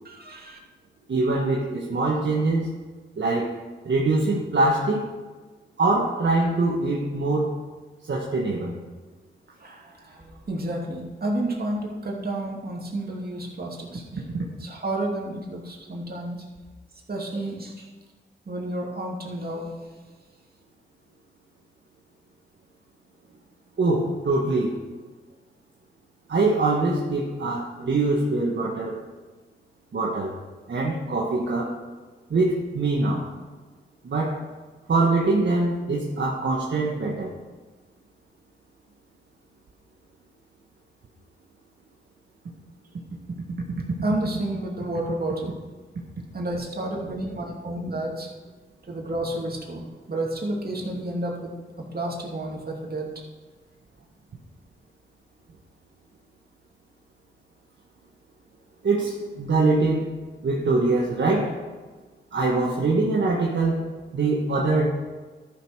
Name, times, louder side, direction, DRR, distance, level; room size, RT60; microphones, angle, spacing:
voice 1, 0.0-0.6 9.6-14.0 14.6-16.4 17.1-17.8 18.5-19.7 44.0-45.5 46.3-48.3 48.9-51.5 51.9-53.1, right 1 dB, 50° right, -2 dB, 2.7 m, -30 dB
voice 2, 1.1-2.7 3.2-3.5 3.8-5.1 5.8-7.6 8.1-8.8 14.1-14.5 23.8-24.8 26.3-29.0 29.9-30.3 30.7-31.7 32.3-33.2 34.0-34.4 34.9-37.3 58.8-60.1 60.4-61.6 62.3-63.9 64.1-64.9, right 3 dB, 65° right, -3 dB, 1.5 m, -23 dB
13.0 x 6.4 x 4.8 m, 1.3 s
cardioid pair, 55°, 20 cm